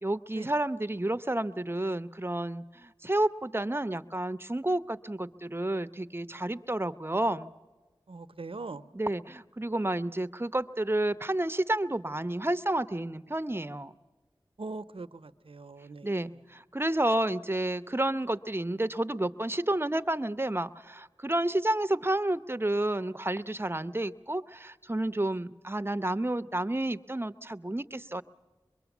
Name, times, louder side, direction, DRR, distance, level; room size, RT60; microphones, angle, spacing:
voice 1, 0.0-7.5 8.9-13.9 16.0-28.2, right 1 dB, 25° right, 13 dB, 0.6 m, -30 dB
voice 2, 8.1-8.9 14.6-16.4, right 3 dB, 80° right, 12 dB, 0.7 m, -42 dB
24.0 x 22.5 x 7.2 m, 1.3 s
wide cardioid pair, 45°, 9 cm